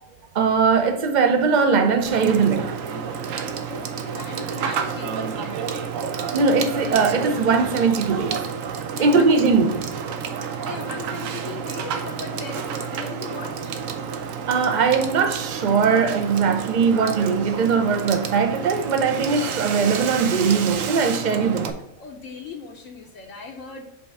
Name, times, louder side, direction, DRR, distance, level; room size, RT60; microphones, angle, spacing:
voice 1, 0.3-2.8 6.3-8.5 9.0-9.9 14.5-21.8, right 5 dB, 45° right, 0.7 m, -20 dB
Water / Water tap faucet / Sink (filling or washing), 2.0-21.7, right 6 dB, 80° right, 1.0 m, -30 dB
voice 2, 3.7-5.6 8.9-9.3 10.6-13.8 16.5-17.0 19.2-19.3 22.0-23.8, left 5 dB, 75° left, 1.1 m, -38 dB
5.5 x 3.4 x 5.4 m
omnidirectional pair, 1.4 m